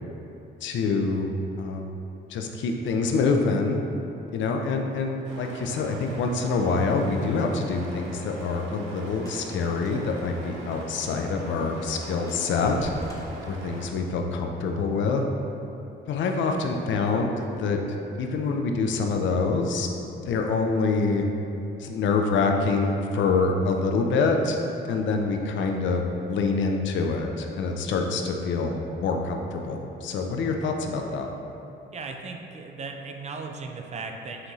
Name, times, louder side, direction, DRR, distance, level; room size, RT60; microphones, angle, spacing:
voice 1, 0.6-1.9 2.3-3.8 4.3-12.9 13.5-15.2 16.1-19.9 20.3-21.2 21.8-24.6 24.9-31.3, left 4 dB, 70° left, 3 dB, 0.5 m, -26 dB
sound 1, 5.2-13.9, right 2 dB, 85° right, 0.6 m, -42 dB
sound 2, 8.7-11.2 11.5-11.6 11.8-12.0 12.3-14.3, left 1 dB, 20° left, 0.6 m, -45 dB
voice 2, 31.9-34.5, right 4 dB, 35° right, 4 dB, 0.4 m, -37 dB
5.7 x 2.6 x 3.1 m, 2.8 s
cardioid pair, 90°, 20 cm